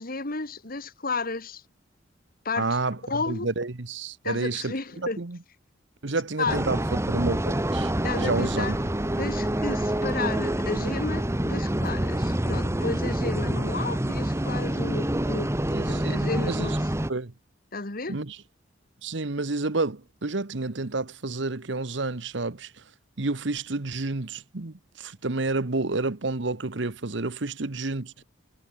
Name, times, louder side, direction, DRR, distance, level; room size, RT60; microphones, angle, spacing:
voice 1, 0.0-1.6 2.5-2.8 3.0-3.5 4.2-5.2 6.4-6.6 8.0-8.8 9.2-15.5 15.9-16.9 17.7-18.2, left 3 dB, 50° left, 2.1 m, -32 dB
voice 2, 2.6-5.4 6.0-7.9 8.2-8.8 15.7-16.8 17.1-17.3 18.1-18.4 19.0-22.7 23.2-28.1, right 3 dB, 70° right, 1.2 m, -30 dB
sound 1, 6.5-17.1, right 1 dB, 15° right, 1.2 m, -27 dB
head